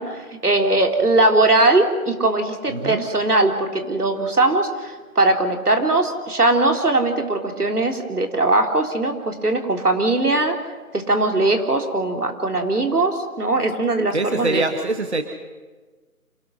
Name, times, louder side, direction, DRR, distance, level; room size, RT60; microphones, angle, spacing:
voice 1, 0.0-10.5 10.9-14.6, right 2 dB, 80° right, 4 dB, 3.6 m, -20 dB
voice 2, 2.7-3.1 14.1-15.2, right 2 dB, 45° right, 7 dB, 1.4 m, -24 dB
27.0 x 18.0 x 6.5 m, 1.3 s
figure-of-eight pair, 175°, 45 cm